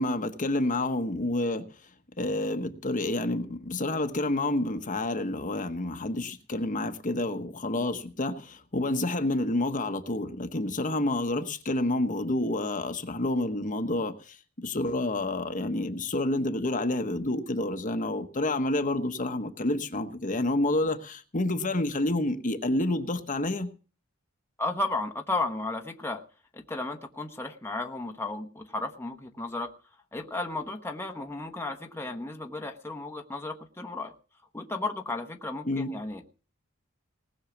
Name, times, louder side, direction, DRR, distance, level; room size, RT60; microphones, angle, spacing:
voice 1, 0.0-1.7 2.2-23.7 35.6-35.9, left 2 dB, 40° left, 7 dB, 1.2 m, -29 dB
voice 2, 24.6-26.2 26.5-29.7 30.1-34.1 34.5-36.2, left 2 dB, 10° left, 3 dB, 1.1 m, -34 dB
19.5 x 6.5 x 7.2 m, 0.38 s
head